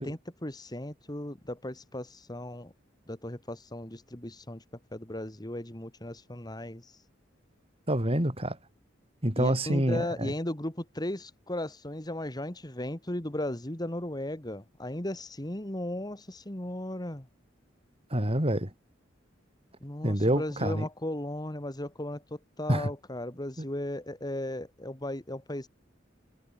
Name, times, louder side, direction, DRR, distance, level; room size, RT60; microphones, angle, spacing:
voice 1, 0.0-2.7 3.1-4.6 4.9-7.0 9.4-17.3 19.8-25.7, left 1 dB, 20° left, 2.2 m, -36 dB
voice 2, 7.9-8.6 9.2-10.3 18.1-18.7 20.0-20.9 22.7-22.9, right 1 dB, 30° right, 4.9 m, -27 dB
head